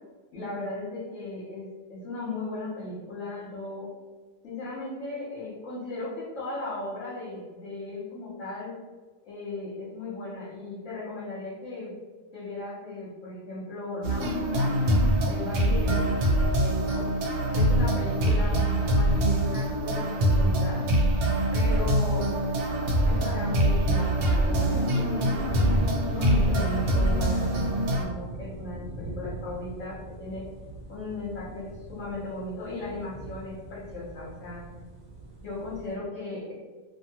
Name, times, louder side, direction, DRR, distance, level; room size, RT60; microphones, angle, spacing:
voice 1, 0.3-3.9 4.4-8.7 9.2-11.9 12.3-14.7 15.3-17.1 17.5-20.9 21.5-22.3 23.0-30.4 30.9-34.6 35.4-36.5, left 2 dB, 70° left, -8 dB, 1.2 m, -37 dB
sound 1, 14.0-28.0, right 1 dB, 65° right, 0.9 m, -24 dB
sound 2, 25.3-35.9, right 1 dB, 30° right, 0.7 m, -39 dB
2.7 x 2.5 x 2.8 m, 1.4 s
omnidirectional pair, 1.4 m